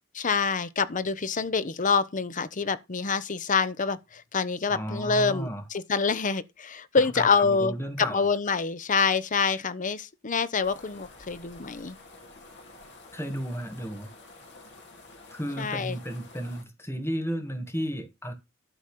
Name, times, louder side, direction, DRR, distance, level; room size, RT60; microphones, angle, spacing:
voice 1, 0.1-12.0 15.6-16.0, left 5 dB, 40° left, 0.8 m, -26 dB
voice 2, 4.7-5.6 6.9-8.3 13.1-14.1 15.3-18.3, equal, 10° left, 1.9 m, -33 dB
sound 1, 10.6-16.6, left 3 dB, 55° left, 2.6 m, -50 dB
12.0 x 4.2 x 6.5 m
head